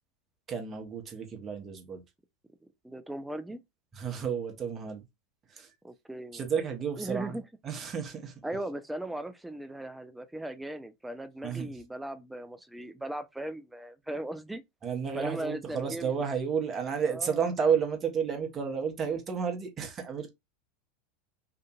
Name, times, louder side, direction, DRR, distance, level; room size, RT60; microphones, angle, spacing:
voice 1, 0.5-2.0 3.9-5.0 5.5-5.7 6.3-7.4 7.6-8.4 11.4-11.8 14.8-20.3, right 6 dB, 30° right, 0.8 m, -31 dB
voice 2, 2.8-3.6 5.8-6.5 7.0-7.4 8.4-14.6 15.1-16.1 17.0-17.4, right 1 dB, 5° right, 0.4 m, -38 dB
2.8 x 2.5 x 2.3 m
figure-of-eight pair, 85°, 0 cm